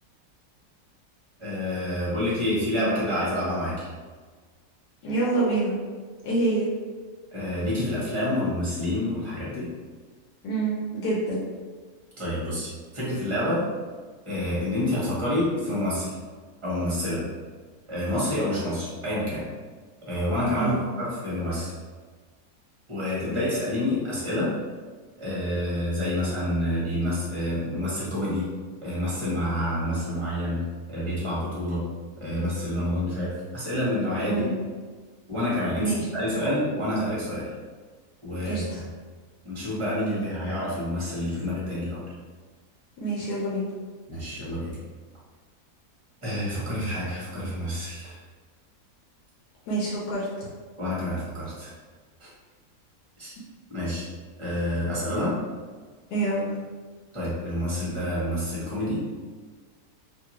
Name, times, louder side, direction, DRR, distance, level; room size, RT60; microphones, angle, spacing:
voice 1, 1.4-3.9 7.3-9.7 12.2-13.7 14.2-16.1 16.6-17.3 17.9-19.4 20.0-21.7 22.9-24.5 25.2-28.5 28.8-30.6 30.9-31.8 32.2-34.4 35.3-37.5 38.2-38.7 39.4-42.0 44.1-44.8 46.2-48.2 50.8-51.7 52.2-52.3 53.2-53.3 53.7-54.0 54.4-55.4 57.1-59.0, left 1 dB, 25° right, -8 dB, 0.9 m, -28 dB
voice 2, 5.0-5.8 6.2-6.7 10.4-11.4 20.5-20.8 34.3-34.5 35.8-36.0 38.4-38.8 43.0-43.7 49.7-50.5 56.1-56.5, right 2 dB, 80° left, -6 dB, 1.2 m, -26 dB
2.7 x 2.5 x 2.9 m, 1.5 s
omnidirectional pair, 1.7 m